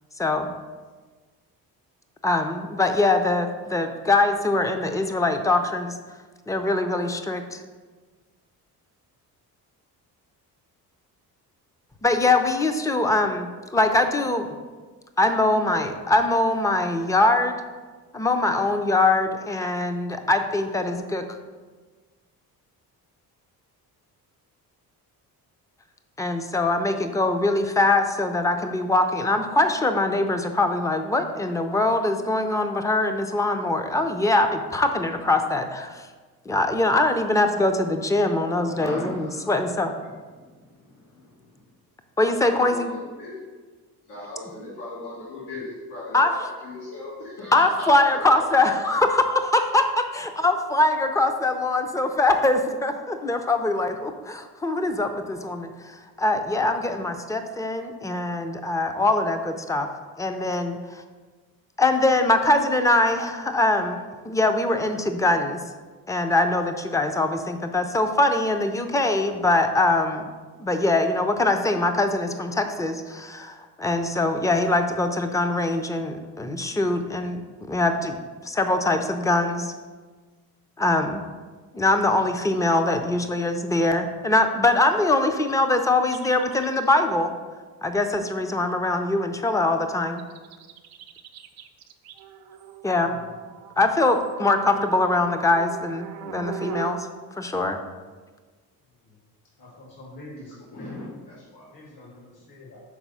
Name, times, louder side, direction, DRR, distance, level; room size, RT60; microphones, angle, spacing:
voice 1, 0.2-0.5 2.2-5.9 6.5-7.6 12.0-14.5 15.2-17.6 18.1-21.2 26.2-36.1 36.5-39.9 42.2-42.9 46.1-46.3 47.5-59.9 60.2-61.0 61.8-64.0 64.3-65.6 66.1-70.3 70.6-79.7 80.8-81.2 81.7-87.3 87.8-90.2 92.8-93.2 93.8-97.1 97.4-97.8, left 2 dB, 10° left, 6 dB, 0.5 m, -23 dB
voice 2, 38.5-39.6 40.6-41.3 42.2-43.4 44.1-47.7 48.1-48.4 100.7-101.7, left 2 dB, 90° left, -8 dB, 2.0 m, -38 dB
sound 1, 86.1-87.0 90.2-97.1, right 9 dB, 65° right, 0.6 m, -39 dB
voice 3, 99.6-101.0 101.7-102.8, left 2 dB, 65° left, -3 dB, 1.9 m, -45 dB
6.1 x 4.1 x 5.4 m, 1.4 s
cardioid pair, 105°, 38 cm